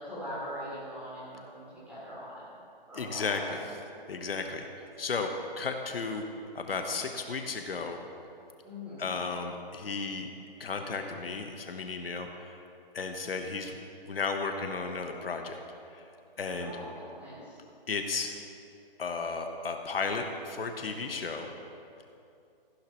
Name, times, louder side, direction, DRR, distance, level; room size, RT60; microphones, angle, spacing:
voice 1, 0.0-2.5 2.9-3.7 8.6-9.1 16.6-17.6, equal, 5° right, -10 dB, 2.7 m, -41 dB
voice 2, 2.9-3.6 4.1-4.7 5.0-5.3 5.6-6.3 6.5-8.0 9.0-10.3 10.6-12.6 12.9-13.7 14.0-15.6 15.9-16.0 16.4-16.7 17.9-18.3 19.0-21.5, left 4 dB, 75° left, 5 dB, 1.1 m, -34 dB
15.0 x 11.5 x 3.0 m, 2.6 s
hypercardioid pair, 160°, 29 cm